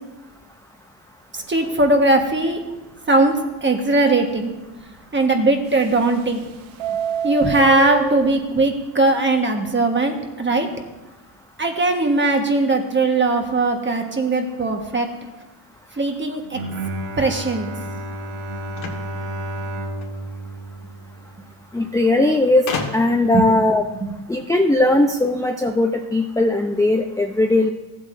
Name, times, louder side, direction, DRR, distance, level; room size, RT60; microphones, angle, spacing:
voice 1, 1.3-2.6 3.1-4.5 5.1-6.4 7.2-10.7 11.6-15.1 15.9-16.6 17.2-17.9 23.3-23.4 24.0-24.1, right 2 dB, 25° right, 4 dB, 1.4 m, -19 dB
Subway metro underground, 1.4-1.7 2.1-2.2 2.5-2.6 3.1-3.2 5.7-6.4 6.7-8.4, right 6 dB, 70° right, 0.7 m, -26 dB
Bowed string instrument, 16.4-21.8, right 1 dB, 85° right, 1.3 m, -31 dB
sound 1, 18.7-20.2 21.3-21.4 21.6-21.7 22.7-23.3, left 4 dB, 75° left, 1.9 m, -30 dB
voice 2, 21.7-22.7 22.9-23.8 24.3-27.7, left 2 dB, 5° left, 2 dB, 0.6 m, -18 dB
15.0 x 8.1 x 2.6 m, 1.1 s
cardioid pair, 95°, 49 cm